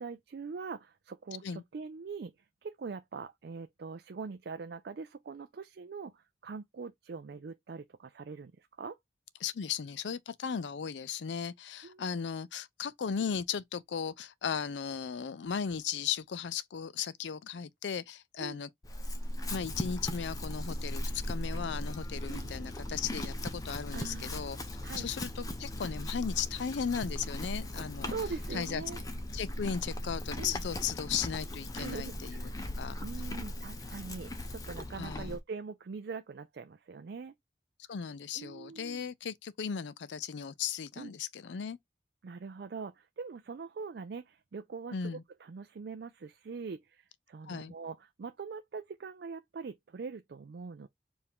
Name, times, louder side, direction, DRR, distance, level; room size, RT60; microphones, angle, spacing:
voice 1, 0.0-2.3 2.6-9.0 11.8-12.1 18.4-18.6 22.3-22.5 23.9-24.4 24.8-25.1 28.1-29.0 30.4-30.6 31.7-32.6 33.0-37.3 38.3-39.0 41.0-41.1 42.2-45.1 45.4-50.9, right 5 dB, 65° right, 0.4 m, -43 dB
voice 2, 9.4-18.7 19.5-28.2 28.5-28.8 29.3-32.5 32.8-33.0 35.0-35.4 37.9-41.8 44.9-45.2 47.5-47.7, left 7 dB, 80° left, 0.4 m, -36 dB
Chewing mastication / Livestock farm animals working animals, 18.8-35.4, left 1 dB, 20° left, 0.6 m, -38 dB
4.6 x 2.6 x 3.5 m
head